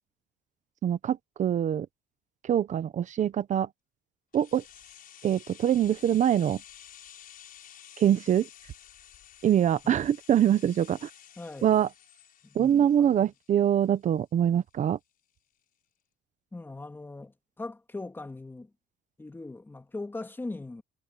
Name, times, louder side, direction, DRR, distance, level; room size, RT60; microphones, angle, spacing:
voice 1, 0.8-1.9 2.4-3.7 4.3-4.6 5.2-6.6 8.0-8.5 9.4-11.1 11.6-11.9 12.5-15.0, right 10 dB, 40° right, 0.8 m, -24 dB
sound 1, 4.3-14.2 14.5-14.6, left 10 dB, 45° left, 5.7 m, -52 dB
voice 2, 11.4-11.8 12.4-13.3 16.5-18.7 19.2-20.8, left 2 dB, 10° left, 3.1 m, -40 dB
cardioid pair, 145°, 20 cm